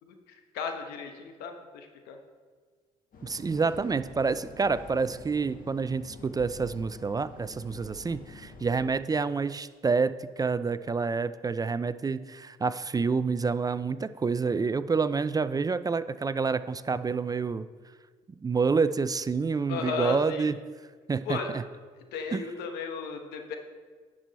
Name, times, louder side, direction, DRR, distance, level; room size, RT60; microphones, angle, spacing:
voice 1, 0.0-2.2 19.7-20.5 21.2-21.5 22.1-23.6, left 5 dB, 80° left, 5 dB, 1.1 m, -35 dB
sound 1, 3.1-8.8, left 2 dB, 60° left, 1.7 m, -48 dB
voice 2, 3.2-17.7 18.4-20.5 21.1-21.6 22.3-22.4, right 4 dB, 25° right, 14 dB, 0.4 m, -28 dB
10.0 x 6.2 x 4.1 m, 1.5 s
supercardioid pair, 60°, 16 cm